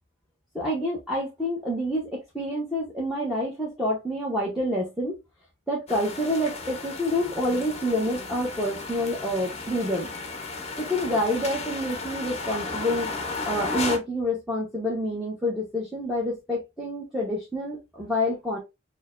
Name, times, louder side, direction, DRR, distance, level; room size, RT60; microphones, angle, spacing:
voice 1, 0.5-5.1 5.7-10.1 10.8-18.6, left 1 dB, ahead, -5 dB, 0.9 m, -28 dB
sound 1, 5.9-14.0, left 3 dB, 30° left, 0.6 m, -34 dB
6.2 x 2.1 x 2.5 m, 0.23 s
head